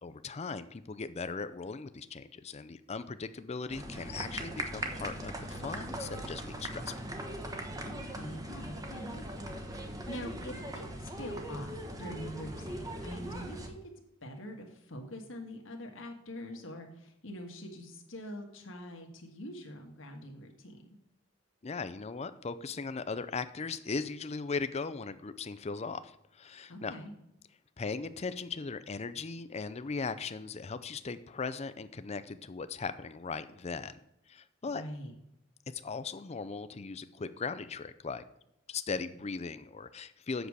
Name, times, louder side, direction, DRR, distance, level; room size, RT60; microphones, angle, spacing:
voice 1, 0.0-7.0 21.6-26.9 27.8-34.0 34.3-34.8 35.7-38.2 38.7-40.5, left 4 dB, 35° left, 12 dB, 0.5 m, -38 dB
sound 1, 3.7-13.7, right 1 dB, 20° right, 1.0 m, -40 dB
voice 2, 7.8-13.8 14.2-20.8 26.7-27.1 34.7-35.1, equal, 75° left, 2 dB, 1.5 m, -44 dB
8.1 x 6.8 x 4.8 m, 0.81 s
head